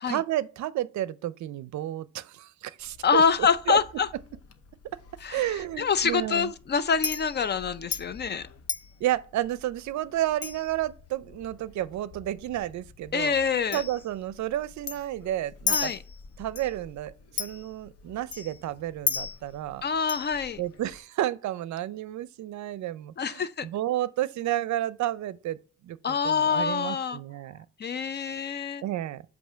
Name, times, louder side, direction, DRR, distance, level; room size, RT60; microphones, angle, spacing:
voice 1, 0.1-3.2 3.7-3.8 5.3-6.5 9.0-15.9 16.4-17.1 17.4-19.8 20.6-25.6 25.8-27.6 28.8-29.2, right 13 dB, 70° right, 0.5 m, -31 dB
Chink clink, 2.8-21.0, left 6 dB, 50° left, 0.8 m, -38 dB
voice 2, 3.0-4.1 5.2-8.5 13.1-13.8 15.7-16.0 19.8-20.6 23.2-23.7 26.0-27.2 27.8-28.8, left 6 dB, 35° left, 0.5 m, -26 dB
7.9 x 2.7 x 5.5 m
cardioid pair, 90°, 30 cm